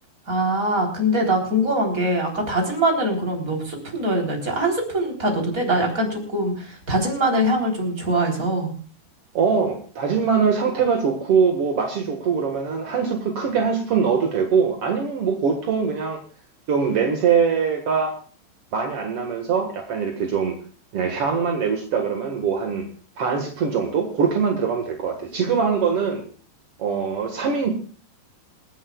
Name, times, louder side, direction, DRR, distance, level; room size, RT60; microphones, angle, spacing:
voice 1, 0.3-8.7, right 1 dB, 20° right, 1 dB, 3.5 m, -23 dB
voice 2, 9.3-16.2 16.7-18.1 18.7-20.6 20.9-22.9 23.2-26.2 26.8-27.7, right 6 dB, 55° right, 3 dB, 1.6 m, -22 dB
27.5 x 10.0 x 2.4 m, 0.42 s
omnidirectional pair, 5.3 m